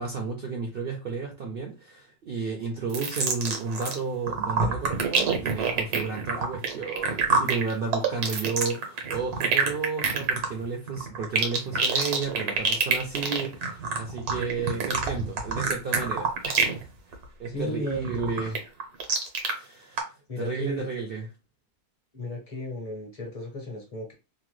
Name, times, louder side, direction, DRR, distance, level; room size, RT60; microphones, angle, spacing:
voice 1, 0.0-16.9 17.4-18.6 19.4-20.1 20.4-21.3, right 4 dB, 65° right, 1 dB, 0.5 m, -32 dB
sound 1, 2.9-4.0 4.3-16.8 17.1-17.5 17.9-19.5 20.0-20.1, right 5 dB, 85° right, 1.3 m, -26 dB
voice 2, 17.5-18.5 20.3-20.9 22.1-24.1, left 1 dB, 35° left, 1 dB, 0.6 m, -35 dB
2.9 x 2.1 x 3.1 m, 0.29 s
omnidirectional pair, 1.6 m